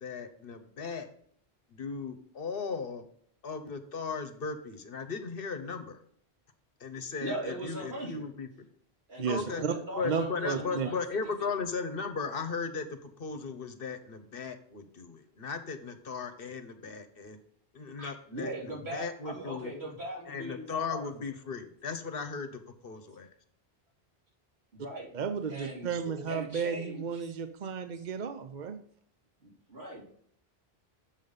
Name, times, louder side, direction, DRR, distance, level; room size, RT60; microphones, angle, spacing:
voice 1, 0.0-1.1 1.7-3.0 3.4-6.0 6.8-8.7 9.2-9.6 10.0-17.4 17.7-19.7 20.3-23.3, left 5 dB, 60° left, 8 dB, 1.1 m, -37 dB
voice 2, 7.2-8.2 9.1-11.0 18.0-21.1 24.7-25.1 25.5-27.1 27.9-28.0 29.4-30.0, right 1 dB, 80° right, -3 dB, 3.0 m, -40 dB
voice 3, 9.2-9.7 10.0-10.9 25.1-28.8, right 6 dB, 50° right, 8 dB, 0.7 m, -33 dB
7.3 x 5.3 x 5.5 m, 0.64 s
omnidirectional pair, 1.1 m